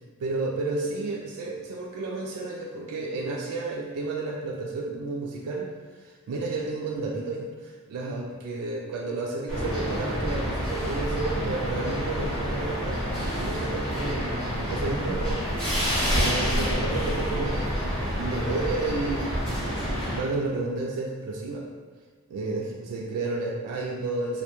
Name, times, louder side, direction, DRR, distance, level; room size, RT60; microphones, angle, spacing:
voice 1, 0.2-5.7 6.0-15.4 16.1-21.7 22.3-24.4, right 3 dB, 90° right, -1 dB, 0.3 m, -31 dB
sound 1, 9.5-20.2, equal, 5° left, 0.8 m, -28 dB
2.2 x 2.1 x 2.9 m, 1.4 s
head